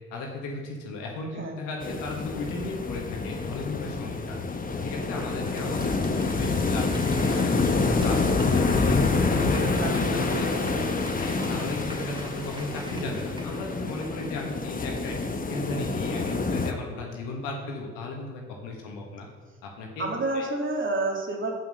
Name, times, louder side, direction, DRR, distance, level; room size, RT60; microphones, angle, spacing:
voice 1, 0.1-9.0 9.3-10.5 11.1-19.3 19.6-20.1 20.3-20.5, left 2 dB, 80° left, 0 dB, 1.6 m, -36 dB
sound 1, 1.8-16.7, left 3 dB, 25° left, 0.9 m, -27 dB
Applause / Crowd, 5.3-14.7 15.1-15.2, equal, 15° right, 2.8 m, -43 dB
voice 2, 9.2-11.0 11.5-11.8 20.0-21.5, right 2 dB, 40° right, 0 dB, 2.4 m, -31 dB
7.4 x 5.7 x 6.5 m, 1.5 s
hypercardioid pair, 45°, 31 cm